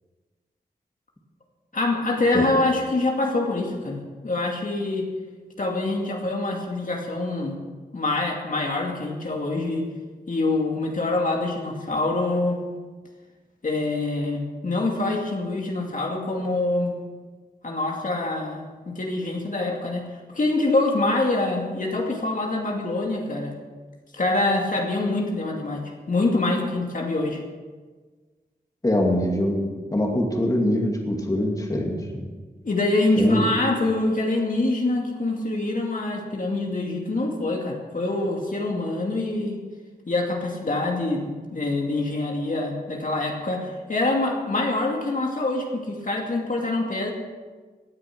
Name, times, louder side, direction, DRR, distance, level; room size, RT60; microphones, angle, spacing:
voice 1, 1.7-5.1 5.6-7.6 7.9-9.9 10.3-12.6 13.6-16.9 17.6-20.0 20.3-23.5 24.1-25.8 26.1-27.4 32.6-39.6 40.1-47.1, left 2 dB, 55° left, 0 dB, 2.4 m, -25 dB
voice 2, 28.8-29.6 29.9-32.3 33.2-33.5, left 1 dB, 20° left, 0 dB, 2.4 m, -23 dB
17.5 x 10.0 x 6.1 m, 1.4 s
wide cardioid pair, 95°, 16 cm